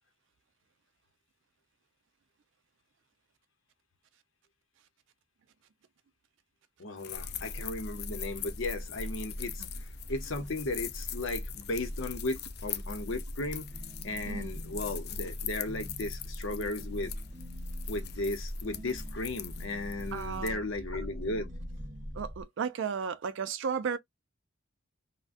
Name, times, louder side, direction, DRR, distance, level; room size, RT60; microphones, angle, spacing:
voice 1, 6.8-13.7 14.0-17.1 17.9-21.5, left 2 dB, 75° left, 0.8 m, -36 dB
sound 1, 7.0-20.5, left 13 dB, 55° left, 0.4 m, -43 dB
sound 2, 7.1-22.4, equal, 5° right, 1.0 m, -41 dB
sound 3, 13.4-22.3, equal, 40° right, 0.9 m, -51 dB
voice 2, 20.1-20.6 22.1-24.0, right 6 dB, 65° right, 0.4 m, -34 dB
3.5 x 2.1 x 2.4 m
head